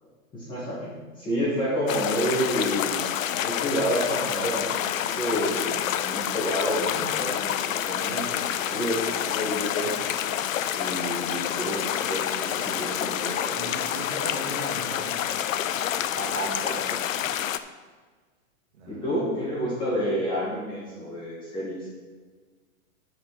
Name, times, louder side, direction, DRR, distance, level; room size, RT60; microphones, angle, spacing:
voice 1, 0.0-3.0 3.4-10.1 10.7-13.7 16.1-17.0 18.9-21.8, equal, 10° left, -7 dB, 1.7 m, -30 dB
sound 1, 1.9-17.6, left 10 dB, 75° left, 0.6 m, -28 dB
voice 2, 13.2-15.2 18.7-19.0, right 2 dB, 50° right, -1 dB, 2.3 m, -38 dB
9.6 x 6.4 x 4.6 m, 1.4 s
supercardioid pair, 170°, 41 cm